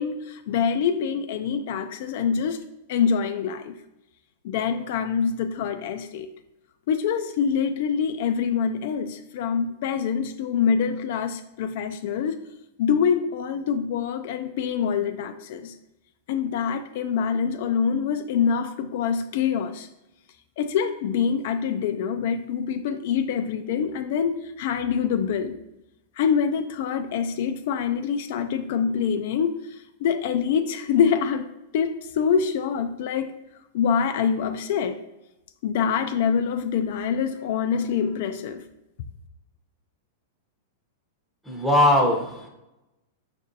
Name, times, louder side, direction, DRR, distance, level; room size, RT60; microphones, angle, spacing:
voice 1, 0.0-2.6 2.9-3.7 4.4-6.3 6.9-12.4 12.8-15.7 16.3-19.9 20.6-25.6 26.2-29.5 30.0-31.5 31.7-33.4 33.7-35.0 35.6-38.6, left 7 dB, 60° left, 8 dB, 0.3 m, -25 dB
voice 2, 41.5-42.5, left 1 dB, 5° right, 0 dB, 0.8 m, -20 dB
5.3 x 2.5 x 2.6 m, 0.92 s
hypercardioid pair, 130°, 0 cm